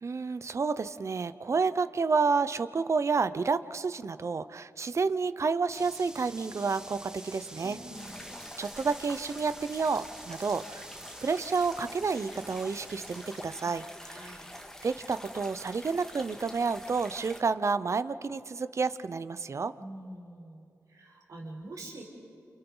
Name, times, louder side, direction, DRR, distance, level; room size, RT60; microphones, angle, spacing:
voice 1, 0.0-7.8 8.6-10.8 11.2-13.8 14.8-19.7, right 4 dB, 55° right, 13 dB, 0.8 m, -30 dB
sound 1, 5.7-13.4, right 1 dB, 10° right, 1.3 m, -48 dB
voice 2, 7.6-8.3 13.6-14.5 19.8-22.0, right 1 dB, 80° right, -3 dB, 5.3 m, -46 dB
sound 2, 7.9-17.4, left 1 dB, 10° left, 1.9 m, -46 dB
29.5 x 28.5 x 4.0 m, 2.5 s
cardioid pair, 60°, 6 cm